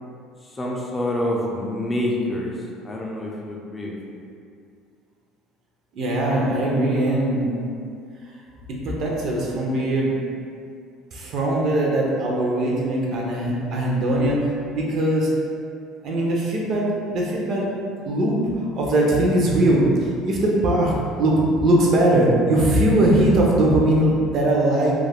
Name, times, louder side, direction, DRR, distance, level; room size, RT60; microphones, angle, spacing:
voice 1, 0.6-2.5 2.8-4.2, left 1 dB, 15° left, -3 dB, 0.3 m, -27 dB
voice 2, 5.9-7.6 8.8-10.1 11.1-14.4 14.8-15.3 16.0-17.7 18.0-18.4 18.7-24.9, right 1 dB, 50° right, -3 dB, 0.5 m, -20 dB
2.3 x 2.0 x 3.4 m, 2.4 s
cardioid pair, 125°, 0 cm